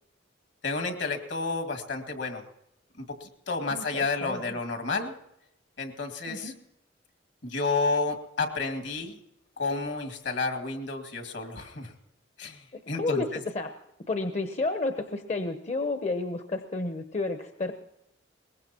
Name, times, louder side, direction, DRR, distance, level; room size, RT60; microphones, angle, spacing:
voice 1, 0.6-2.4 3.0-5.1 5.8-6.5 7.4-9.2 9.6-11.9 12.4-13.2, left 3 dB, 70° left, 5 dB, 2.1 m, -31 dB
voice 2, 3.7-4.6 6.3-6.5 12.7-13.7 14.0-17.7, left 3 dB, 40° left, 7 dB, 0.8 m, -31 dB
22.5 x 20.0 x 2.9 m, 0.81 s
head